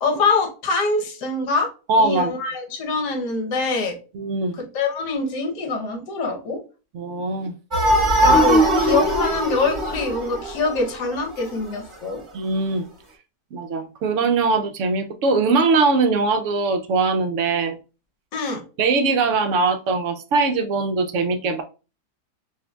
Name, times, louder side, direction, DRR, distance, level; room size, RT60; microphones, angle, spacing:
voice 1, 0.0-1.7 2.0-4.0 4.5-6.6 8.2-12.2 18.3-18.6, left 3 dB, 75° left, 3 dB, 1.5 m, -24 dB
voice 2, 1.9-2.3 4.1-4.6 6.9-7.5 8.2-8.4 12.3-12.8 13.5-17.8 18.8-21.6, right 3 dB, 75° right, 6 dB, 0.7 m, -21 dB
sound 1, 7.7-11.1, equal, 20° right, 0.9 m, -19 dB
6.2 x 2.6 x 2.2 m, 0.32 s
omnidirectional pair, 1.8 m